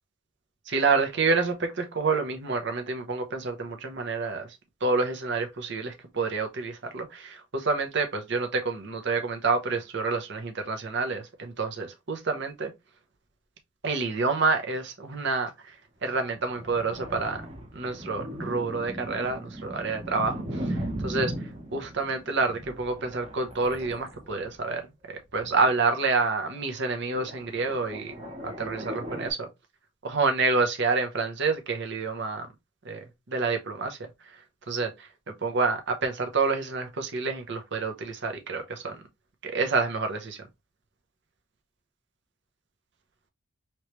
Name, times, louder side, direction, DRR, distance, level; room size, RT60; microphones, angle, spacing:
voice 1, 0.7-4.5 4.8-12.7 13.8-15.7 16.0-17.4 17.7-21.3 21.7-24.9 25.3-28.1 28.4-29.5 30.0-32.5 32.8-33.0 33.3-34.0 34.7-34.9 35.4-39.0 39.4-40.4, right 4 dB, 50° right, 0.8 m, -28 dB
sound 1, 16.3-24.5 25.3-26.8 27.1-29.3, right 1 dB, 30° right, 1.1 m, -38 dB
3.1 x 3.0 x 3.1 m
head